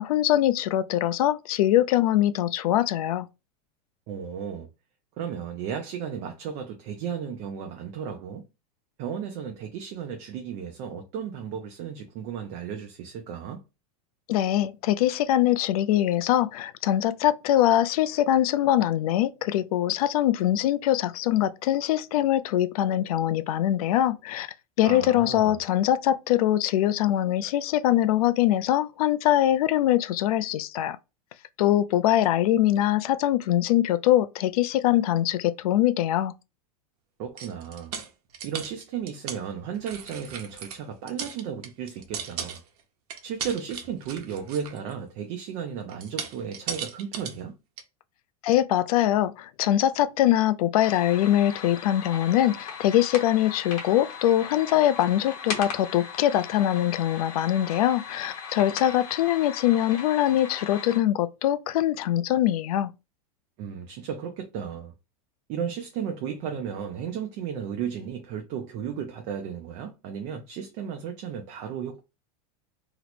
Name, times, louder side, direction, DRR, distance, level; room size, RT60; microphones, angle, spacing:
voice 1, 0.0-3.3 14.3-24.5 24.8-31.0 31.6-36.3 48.4-62.9, left 12 dB, 70° left, 0.4 m, -23 dB
voice 2, 4.1-4.7 5.2-8.4 9.0-13.6 24.8-25.6 37.2-37.9 38.4-42.6 43.2-47.5 63.6-64.9 65.5-72.0, right 8 dB, 35° right, 0.4 m, -34 dB
sound 1, 37.4-39.4 39.7-40.8 41.1-42.8 43.1-44.9 45.9-47.4 47.8-47.9, right 7 dB, 80° right, 0.8 m, -37 dB
sound 2, 50.8-61.0, left 6 dB, 55° left, 0.9 m, -38 dB
2.9 x 2.0 x 4.1 m
supercardioid pair, 165°, 20 cm